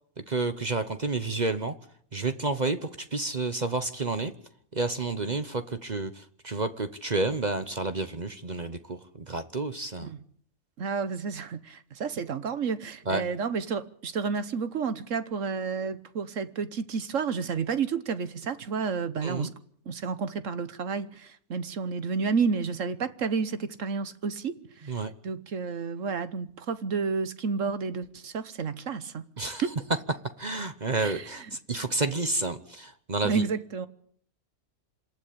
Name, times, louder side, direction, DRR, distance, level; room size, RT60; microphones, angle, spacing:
voice 1, 0.3-1.7 2.1-4.3 4.7-10.1 13.1-13.2 19.2-19.5 24.9-25.1 29.4-29.6 30.4-33.4, right 3 dB, 35° right, 0.9 m, -30 dB
voice 2, 10.8-19.5 19.9-29.2 29.6-29.7 31.0-31.5 33.2-33.9, right 5 dB, 60° right, 1.4 m, -31 dB
26.5 x 12.5 x 8.6 m
omnidirectional pair, 1.6 m